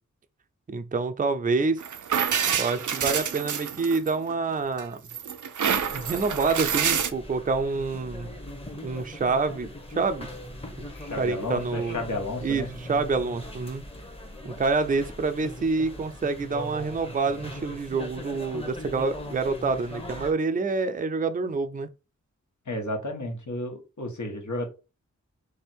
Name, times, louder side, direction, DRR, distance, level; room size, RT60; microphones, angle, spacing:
voice 1, 0.7-1.8 2.5-5.0 5.9-8.3 8.8-10.3 11.1-12.0 12.4-13.8 14.4-21.9, right 4 dB, 30° right, 0.5 m, -27 dB
sound 1, 1.8-4.3 4.8-7.1, right 7 dB, 85° right, 0.6 m, -27 dB
sound 2, 5.6-20.3, left 1 dB, 20° left, 1.0 m, -40 dB
voice 2, 10.9-12.7 22.7-24.7, left 1 dB, 75° left, 1.5 m, -32 dB
3.5 x 3.4 x 4.4 m
wide cardioid pair, 105°, 30 cm